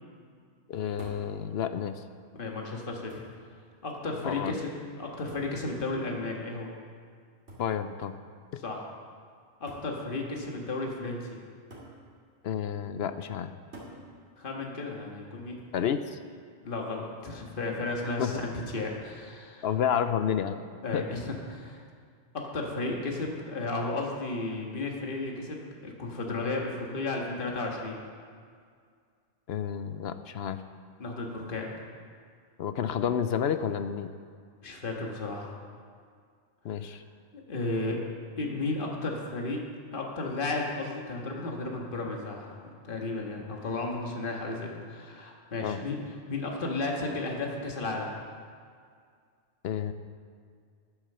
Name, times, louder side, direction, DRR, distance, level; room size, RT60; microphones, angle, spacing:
voice 1, 0.7-2.0 4.2-4.5 7.6-8.1 8.5-8.6 12.4-13.5 15.7-16.2 18.2-18.4 19.6-20.7 20.9-21.0 29.5-30.6 32.6-34.1 36.6-37.0 45.6-45.8 49.6-49.9, left 8 dB, 65° left, 10 dB, 0.8 m, -30 dB
sound 1, 1.0-1.3 2.4-2.5 3.1-3.5 5.3-5.6 7.5-7.8 8.8-8.9 9.7-10.0 11.7-12.0 13.7-14.0 15.6-16.0, right 1 dB, 65° right, 2.8 m, -48 dB
voice 2, 2.3-3.2 3.8-6.7 8.6-8.8 9.6-11.4 14.4-15.6 16.6-19.7 20.8-21.8 22.3-28.0 31.0-31.7 34.6-35.5 37.3-38.0 38.4-39.6 39.9-42.5 42.8-46.0 46.3-48.1, left 2 dB, 50° left, 0 dB, 1.6 m, -33 dB
10.5 x 9.8 x 6.7 m, 2.1 s
omnidirectional pair, 1.2 m